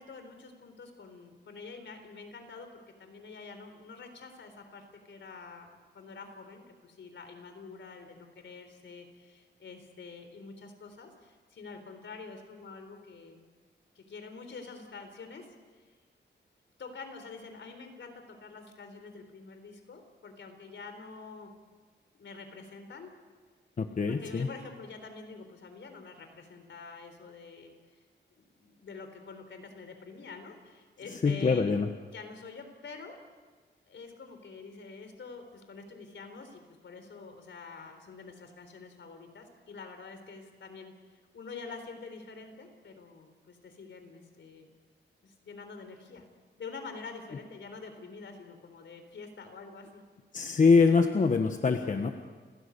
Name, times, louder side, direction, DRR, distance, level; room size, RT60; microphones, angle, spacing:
voice 1, 0.0-5.7 5.9-13.4 14.0-15.5 15.7-15.9 16.8-21.5 22.1-23.1 24.1-28.0 28.4-31.7 32.1-33.2 33.9-44.7 45.2-46.3 46.6-50.0, left 4 dB, 70° left, 6 dB, 3.9 m, -47 dB
voice 2, 23.8-24.5 31.2-31.9 50.3-52.1, left 4 dB, 40° left, 6 dB, 1.2 m, -24 dB
29.5 x 17.0 x 8.3 m, 1.5 s
wide cardioid pair, 155°, 20 cm